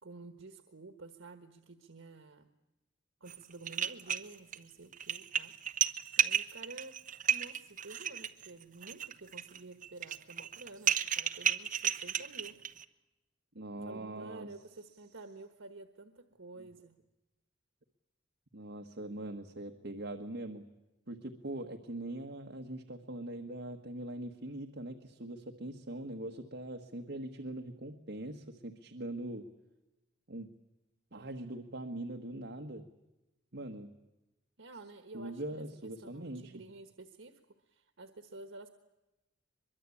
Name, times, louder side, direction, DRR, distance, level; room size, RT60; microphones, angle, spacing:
voice 1, 0.0-2.5 3.2-7.0 7.3-12.5 13.8-17.0 34.6-35.6 36.0-37.4 37.7-38.7, right 3 dB, 90° right, 8 dB, 1.4 m, -51 dB
sound 1, 3.3-3.4 3.7-4.6 4.9-12.8, right 9 dB, 40° right, 0.9 m, -33 dB
voice 2, 13.5-14.5 16.6-16.7 18.5-20.6 21.1-29.5 30.3-30.5 31.1-32.8 33.5-33.9 35.1-36.5, right 1 dB, 60° right, 4 dB, 1.5 m, -42 dB
23.0 x 23.0 x 8.5 m, 1.0 s
head